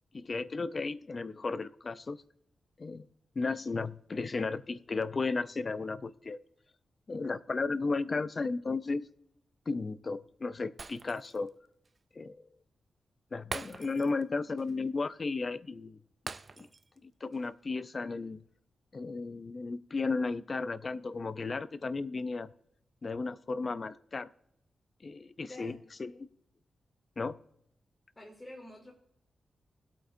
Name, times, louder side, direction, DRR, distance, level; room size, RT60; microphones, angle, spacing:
voice 1, 0.1-2.2 2.8-3.1 3.4-6.4 7.1-9.1 9.7-11.5 12.2-12.4 13.3-16.0 16.6-16.7 17.2-18.4 18.9-22.5 23.0-24.3 25.0-26.3 27.2-27.4, left 3 dB, 35° left, 14 dB, 0.5 m, -34 dB
Shatter, 10.8-11.5 11.9-12.0 13.5-14.3 14.6-14.7 16.3-17.0 17.3-17.5, right 3 dB, 30° right, 0.4 m, -43 dB
voice 2, 28.2-28.9, left 1 dB, 15° left, -3 dB, 2.4 m, -47 dB
20.5 x 8.5 x 2.6 m, 0.74 s
wide cardioid pair, 150°, 0 cm